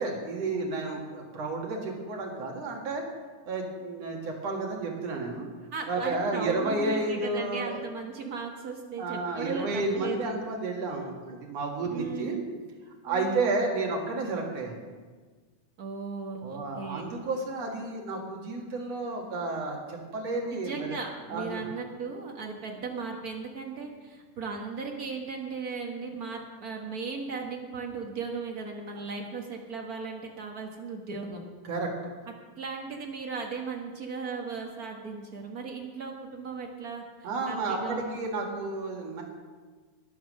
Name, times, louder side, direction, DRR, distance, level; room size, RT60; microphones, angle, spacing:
voice 1, 0.0-3.0 3.5-5.5 5.9-7.8 9.0-12.4 13.0-14.8 16.4-21.0 21.3-21.6 31.6-31.9 37.2-39.2, right 3 dB, 55° right, 0 dB, 2.9 m, -31 dB
voice 2, 5.7-10.4 11.9-12.4 13.0-13.6 15.8-17.1 20.5-31.4 32.6-38.1, right 4 dB, 80° right, 1 dB, 0.8 m, -37 dB
12.0 x 11.0 x 6.5 m, 1.4 s
omnidirectional pair, 3.7 m